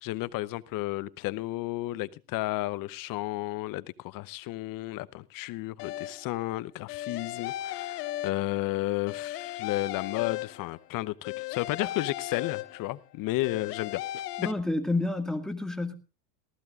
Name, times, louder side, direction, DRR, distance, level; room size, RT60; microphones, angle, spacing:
voice 1, 0.0-14.2, left 18 dB, 45° left, 0.9 m, -33 dB
sound 1, 5.8-6.4 6.9-8.7 9.1-10.9 11.2-13.0 13.4-14.5, left 14 dB, 75° left, 1.4 m, -36 dB
voice 2, 14.4-15.9, left 2 dB, ahead, 2.0 m, -29 dB
19.0 x 15.0 x 2.5 m
supercardioid pair, 115°, 47 cm